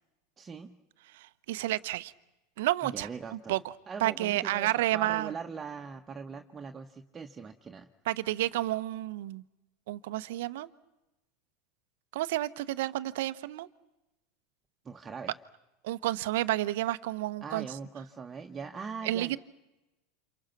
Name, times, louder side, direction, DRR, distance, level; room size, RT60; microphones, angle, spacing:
voice 1, 0.4-0.8 2.8-3.6 3.9-7.9 14.8-15.4 17.4-19.4, right 5 dB, 25° right, 4 dB, 1.5 m, -41 dB
voice 2, 1.1-2.1 2.6-3.6 4.0-5.3 8.1-9.4 9.9-10.7 12.1-13.7 15.8-17.7 19.0-19.4, right 16 dB, 70° right, 15 dB, 1.0 m, -30 dB
29.5 x 28.0 x 6.1 m, 1.0 s
hypercardioid pair, 85°, 0 cm